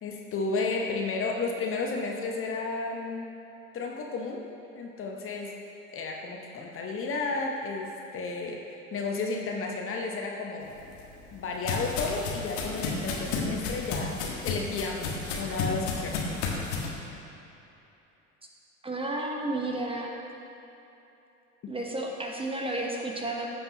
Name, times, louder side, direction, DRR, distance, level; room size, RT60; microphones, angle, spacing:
voice 1, 0.0-3.3 3.7-4.5 4.7-5.6 5.9-10.7 11.3-14.2 14.4-16.3 21.6-21.7, left 3 dB, 35° left, 1 dB, 0.9 m, -32 dB
sound 1, 10.8-16.9, left 4 dB, 60° left, 1.5 m, -32 dB
voice 2, 18.8-20.1 21.7-23.5, right 2 dB, 15° right, 0 dB, 1.1 m, -32 dB
14.5 x 5.5 x 2.9 m, 2.9 s
hypercardioid pair, 75°, 40 cm